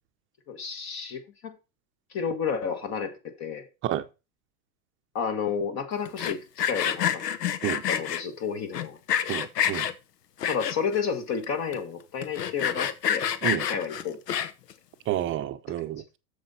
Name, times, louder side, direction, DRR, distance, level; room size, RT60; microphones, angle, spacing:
voice 1, 0.5-1.5 2.1-3.1 3.4-3.7 5.2-7.2 7.9-9.3 10.5-13.3 13.7-14.4, left 6 dB, 35° left, 1.6 m, -31 dB
Sawing, 6.1-8.2 8.7-9.9 10.4-11.0 11.4-11.5 11.7-11.8 12.2-14.7, left 9 dB, 90° left, 1.1 m, -28 dB
voice 2, 9.3-9.9 13.4-13.7 15.1-16.0, right 13 dB, 25° right, 0.7 m, -29 dB
7.8 x 7.1 x 4.2 m
hypercardioid pair, 125°, 47 cm